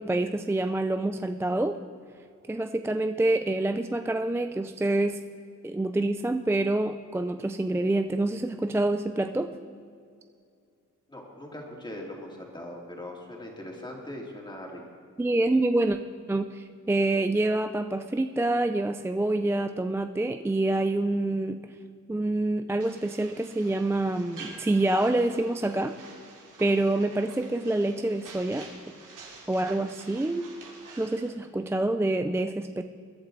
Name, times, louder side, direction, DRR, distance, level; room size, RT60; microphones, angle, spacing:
voice 1, 0.0-1.8 2.5-5.2 5.6-9.5 15.2-16.0 16.3-21.7 22.1-26.0 26.6-29.0 29.5-30.5 31.0-32.8, right 2 dB, 10° right, 8 dB, 0.4 m, -27 dB
voice 2, 11.1-14.8, left 1 dB, 15° left, -1 dB, 2.8 m, -40 dB
sound 1, 22.8-31.3, right 4 dB, 90° right, 2.8 m, -48 dB
21.5 x 11.5 x 4.0 m, 2.3 s
cardioid pair, 115°, 31 cm